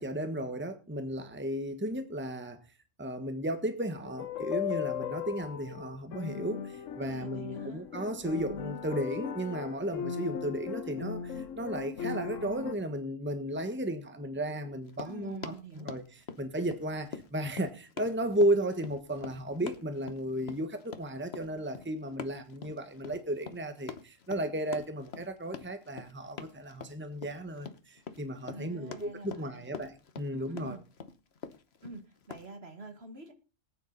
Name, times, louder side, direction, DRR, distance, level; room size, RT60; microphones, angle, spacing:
voice 1, 0.0-2.6 3.0-16.0 16.4-30.8, right 1 dB, 10° right, 1.4 m, -34 dB
sound 1, 4.0-12.7, left 8 dB, 85° left, 1.2 m, -37 dB
voice 2, 7.0-7.8 15.0-15.9 28.4-29.7 30.3-30.8 31.8-33.3, right 2 dB, 55° right, 2.3 m, -46 dB
Run, 14.8-32.5, left 6 dB, 55° left, 1.3 m, -45 dB
19.0 x 9.4 x 4.1 m
omnidirectional pair, 1.3 m